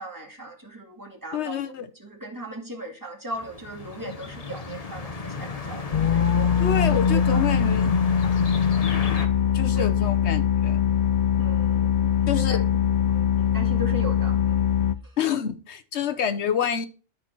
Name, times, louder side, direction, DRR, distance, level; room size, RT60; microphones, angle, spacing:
voice 1, 0.0-7.4 9.7-9.9 11.4-14.6, right 1 dB, 15° right, 2.2 m, -38 dB
voice 2, 1.3-1.9 6.6-7.9 9.5-10.8 12.3-12.6 15.2-16.9, left 8 dB, 60° left, 1.1 m, -27 dB
sound 1, 3.4-9.3, left 3 dB, 35° left, 0.8 m, -33 dB
sound 2, 5.9-14.9, left 8 dB, 85° left, 0.3 m, -22 dB
11.5 x 4.3 x 4.5 m
omnidirectional pair, 1.4 m